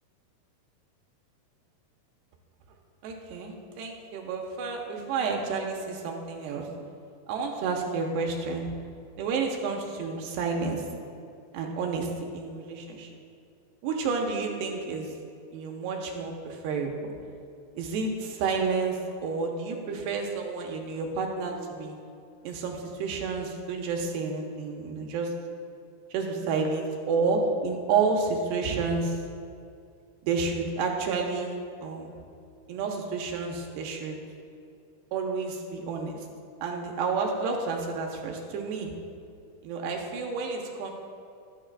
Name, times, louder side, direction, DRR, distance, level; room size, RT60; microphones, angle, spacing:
voice 1, 3.0-6.7 7.3-8.7 9.2-10.8 11.5-13.1 13.8-15.1 15.5-16.9 17.8-21.9 22.4-25.3 26.1-29.1 30.2-31.5 31.8-32.1 32.7-34.2 35.1-36.3 36.6-38.9 39.6-40.9, right 4 dB, 70° right, 1 dB, 2.9 m, -30 dB
24.0 x 9.9 x 2.5 m, 2.5 s
omnidirectional pair, 5.4 m